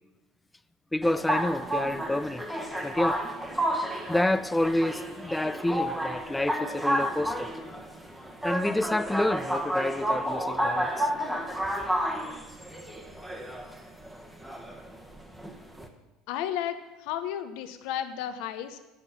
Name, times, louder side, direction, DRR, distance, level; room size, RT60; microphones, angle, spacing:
voice 1, 0.9-2.4 2.8-3.2 4.1-7.5 8.4-11.1, left 1 dB, 10° left, 0.4 m, -28 dB
sound 1, 1.0-15.9, equal, 10° right, 1.1 m, -31 dB
voice 2, 16.3-18.8, left 10 dB, 65° left, 0.8 m, -33 dB
8.0 x 5.3 x 7.2 m
hypercardioid pair, 75°, 0 cm